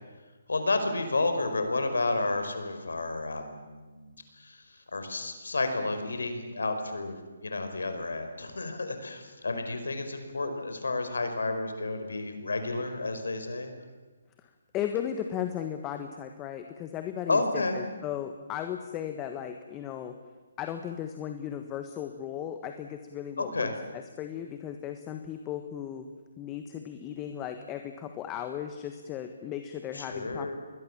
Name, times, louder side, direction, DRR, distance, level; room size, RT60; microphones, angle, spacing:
voice 1, 0.5-13.7 17.3-17.8 23.4-23.8 29.9-30.6, left 2 dB, 85° left, 7 dB, 4.9 m, -31 dB
voice 2, 14.7-20.1 20.6-26.1 26.4-30.5, left 9 dB, 20° left, 6 dB, 1.4 m, -36 dB
28.5 x 21.5 x 7.4 m, 1.3 s
hypercardioid pair, 150°, 0 cm